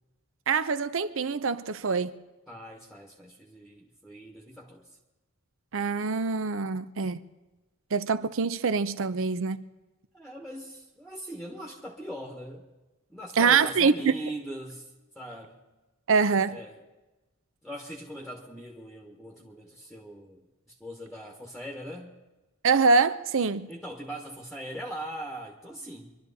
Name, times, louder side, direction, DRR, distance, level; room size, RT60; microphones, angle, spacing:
voice 1, 0.5-2.1 5.7-7.2 7.9-9.6 13.4-14.1 16.1-16.6 22.6-23.7, right 5 dB, 65° right, 0.6 m, -24 dB
voice 2, 2.5-4.9 10.1-12.6 13.1-15.6 16.4-16.8 17.6-22.1 23.7-26.2, right 1 dB, ahead, 1.3 m, -41 dB
25.0 x 12.0 x 4.1 m
head